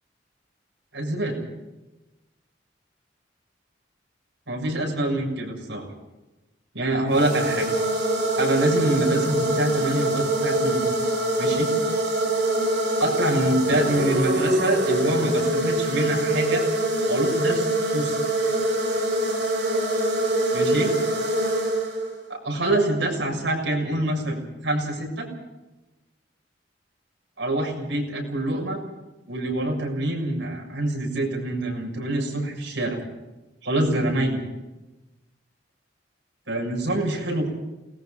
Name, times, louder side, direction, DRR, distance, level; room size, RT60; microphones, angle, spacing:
voice 1, 0.9-1.4 4.5-5.9 6.7-7.7 8.4-10.9 11.4-11.7 13.0-16.6 17.0-18.2 20.5-21.0 22.3-25.3 27.4-28.8 29.3-33.0 33.6-34.4 36.5-37.5, right 1 dB, 85° right, 0 dB, 7.2 m, -25 dB
sound 1, 7.1-22.3, right 1 dB, 65° right, 5.5 m, -24 dB
28.5 x 20.0 x 5.3 m, 1.0 s
head